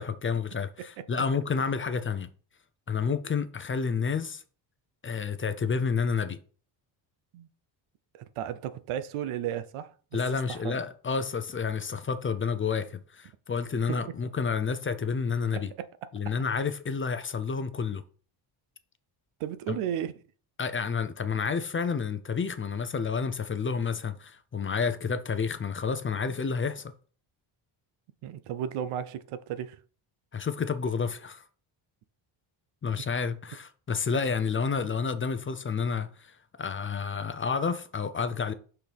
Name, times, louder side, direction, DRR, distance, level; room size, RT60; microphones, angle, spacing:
voice 1, 0.0-2.3 2.9-4.4 5.0-6.4 10.1-15.7 16.1-18.0 19.7-19.8 20.6-26.9 30.3-31.5 32.8-38.5, left 5 dB, 25° left, 0.6 m, -30 dB
voice 2, 8.1-10.2 10.5-10.7 13.9-14.0 15.5-16.1 19.4-20.2 28.2-29.8, right 10 dB, 80° right, 0.8 m, -34 dB
5.9 x 5.9 x 3.5 m
cardioid pair, 100°, 49 cm